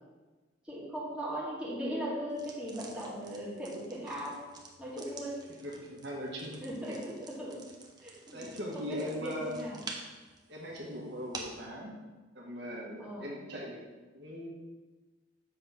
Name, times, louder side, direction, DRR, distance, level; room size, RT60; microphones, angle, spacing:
voice 1, 0.6-4.4 4.8-5.4 6.6-7.6 8.0-8.4 8.7-9.8 13.0-13.3, equal, 5° right, -8 dB, 2.0 m, -38 dB
sound 1, 2.3-11.7, right 3 dB, 25° right, 0.8 m, -49 dB
voice 2, 5.6-6.6 6.9-7.0 8.3-9.6 10.5-12.0 12.3-13.8 14.1-14.5, equal, 65° right, -3 dB, 1.4 m, -39 dB
6.9 x 3.7 x 5.6 m, 1.3 s
head